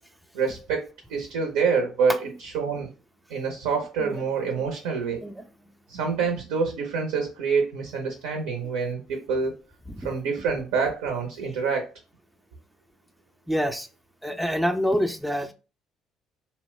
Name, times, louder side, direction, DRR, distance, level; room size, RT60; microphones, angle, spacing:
voice 1, 0.3-2.9 3.3-5.2 5.9-9.6 10.0-11.9, right 5 dB, 85° right, 2 dB, 0.6 m, -27 dB
voice 2, 5.2-5.7 10.0-10.1 13.5-13.9 14.2-15.5, equal, 5° right, 6 dB, 0.4 m, -27 dB
2.7 x 2.0 x 3.1 m, 0.32 s
supercardioid pair, 70°, 0 cm